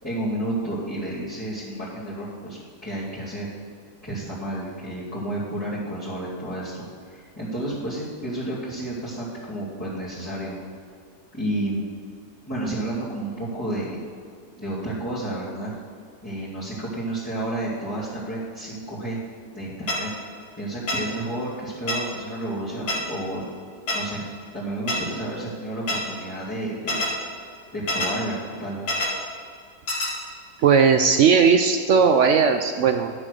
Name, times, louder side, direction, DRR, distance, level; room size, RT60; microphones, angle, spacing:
voice 1, 0.0-3.5 4.0-10.5 11.3-11.8 12.5-14.0 14.6-15.7 16.2-19.2 19.5-20.1 20.5-23.4 23.9-24.2 24.5-27.1 27.7-28.8, right 1 dB, 10° left, -11 dB, 2.4 m, -31 dB
sound 1, 19.9-20.0 20.9-21.0 21.9-22.0 22.9-23.0 23.9-24.0 24.9-25.0 25.9-26.0 26.9-27.1 27.9-28.1 28.9-29.1 29.9-30.1, left 2 dB, 85° left, 2.7 m, -24 dB
voice 2, 30.6-33.1, right 6 dB, 75° right, 7 dB, 0.7 m, -17 dB
11.0 x 6.4 x 6.5 m, 2.2 s
omnidirectional pair, 1.8 m